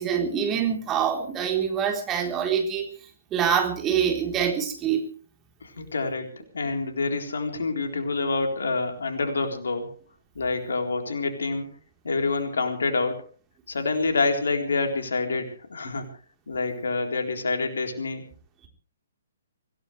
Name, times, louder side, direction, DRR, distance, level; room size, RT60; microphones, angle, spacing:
voice 1, 0.0-2.9 3.3-5.0, right 8 dB, 20° right, 3 dB, 3.9 m, -25 dB
voice 2, 5.6-6.3 6.5-9.9 10.4-11.7 12.0-13.2 13.7-16.1 16.5-18.2, left 3 dB, 70° left, 4 dB, 3.9 m, -27 dB
25.5 x 17.0 x 3.3 m, 0.39 s
figure-of-eight pair, 125°, 0 cm